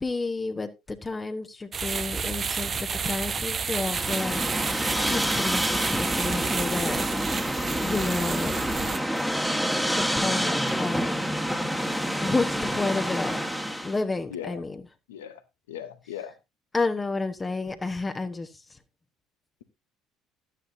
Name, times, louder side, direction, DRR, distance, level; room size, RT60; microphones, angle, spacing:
voice 1, 0.0-4.4 5.0-7.1 7.8-8.5 10.0-11.1 12.2-13.4 13.8-14.8 16.7-18.5, left 3 dB, 20° left, 1.1 m, -30 dB
sound 1, 1.7-9.0, right 6 dB, 35° right, 0.7 m, -31 dB
sound 2, 3.9-14.0, equal, ahead, 1.5 m, -28 dB
voice 2, 14.3-14.7 15.1-15.4 15.7-16.3, left 10 dB, 70° left, 1.1 m, -38 dB
12.5 x 9.3 x 2.7 m
figure-of-eight pair, 55°, 0 cm